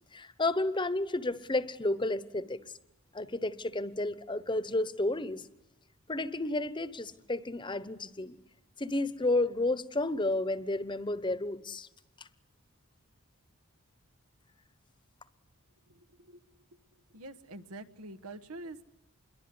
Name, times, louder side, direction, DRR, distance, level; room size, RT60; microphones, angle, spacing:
voice 1, 0.1-2.6 3.1-5.4 6.1-8.4 8.8-11.9 12.2-12.3, left 2 dB, 20° left, 15 dB, 1.0 m, -31 dB
voice 2, 15.9-16.4 17.1-18.8, right 2 dB, 90° right, 10 dB, 1.4 m, -46 dB
27.5 x 22.5 x 9.7 m, 0.95 s
head